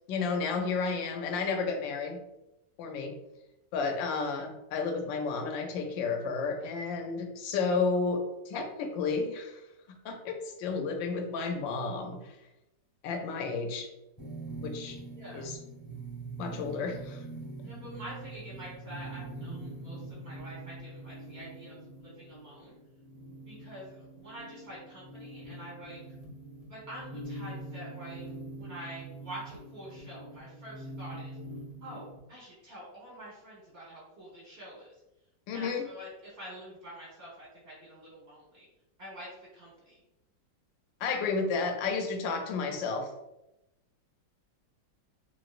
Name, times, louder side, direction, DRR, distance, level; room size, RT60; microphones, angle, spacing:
voice 1, 0.1-2.2 2.8-3.1 3.7-9.6 10.0-12.4 13.0-13.9 14.6-15.0 15.3-15.6 16.4-17.2 35.5-35.8 41.0-43.1, left 4 dB, 90° left, 4 dB, 1.3 m, -32 dB
sound 1, 14.2-32.2, right 2 dB, 15° left, 1.2 m, -44 dB
voice 2, 15.1-15.5 17.6-22.8 23.3-26.0 26.7-31.4 31.8-34.9 35.5-38.7 39.0-40.0, right 1 dB, 40° right, -7 dB, 1.2 m, -46 dB
3.0 x 2.9 x 2.4 m, 0.90 s
omnidirectional pair, 2.0 m